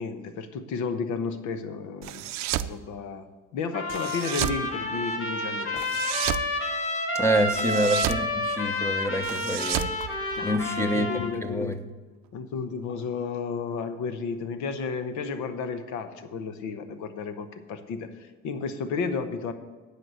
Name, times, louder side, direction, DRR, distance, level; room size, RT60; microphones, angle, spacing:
voice 1, 0.0-2.2 2.5-3.3 3.5-5.8 7.6-7.7 10.4-11.8 12.3-19.5, left 5 dB, 80° left, 10 dB, 1.0 m, -33 dB
sound 1, 2.0-2.7 3.9-4.6 5.8-6.5 7.5-8.3 9.2-10.7, right 14 dB, 70° right, 0.5 m, -31 dB
Trumpet, 3.7-11.3, left 1 dB, 50° left, 1.7 m, -30 dB
voice 2, 7.1-9.9 10.4-11.8, equal, 10° left, 9 dB, 0.9 m, -27 dB
10.5 x 4.9 x 7.8 m, 1.4 s
cardioid pair, 90°, 29 cm